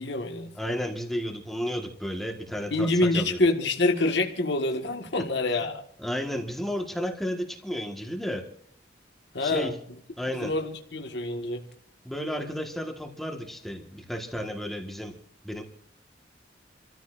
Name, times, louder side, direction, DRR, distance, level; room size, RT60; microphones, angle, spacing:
voice 1, 0.0-0.5 2.7-5.8 9.3-9.7 10.3-11.6, left 2 dB, 65° left, 2 dB, 1.6 m, -26 dB
voice 2, 0.5-3.4 6.0-8.4 9.4-9.7 10.2-10.5 12.0-15.1 15.4-15.6, equal, ahead, 2 dB, 1.4 m, -32 dB
28.5 x 14.5 x 2.5 m, 0.64 s
head